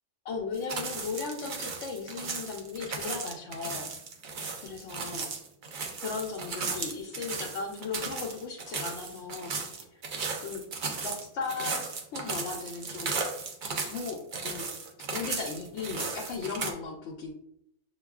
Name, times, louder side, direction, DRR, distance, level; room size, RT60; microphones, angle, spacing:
voice 1, 0.2-3.9 4.6-5.3 6.0-10.0 10.4-10.6 11.0-13.2 13.7-14.7 15.1-17.3, left 4 dB, 75° left, -1 dB, 0.9 m, -37 dB
sound 1, 0.5-16.7, right 4 dB, 55° right, 0.6 m, -36 dB
6.3 x 2.3 x 2.3 m, 0.74 s
omnidirectional pair, 1.3 m